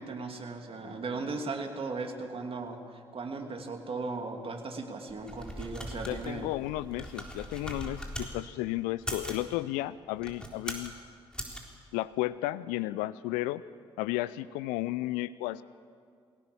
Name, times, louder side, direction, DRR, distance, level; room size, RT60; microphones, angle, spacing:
voice 1, 0.0-6.5, right 3 dB, 45° right, 4 dB, 2.7 m, -37 dB
sound 1, 5.1-8.3 8.9-9.5 10.1-10.9 11.3-11.6, equal, 5° left, 3.9 m, -40 dB
voice 2, 6.1-10.9 11.9-13.6 14.0-15.6, left 17 dB, 75° left, 17 dB, 0.5 m, -33 dB
22.0 x 17.5 x 7.1 m, 2.1 s
hypercardioid pair, 45°, 13 cm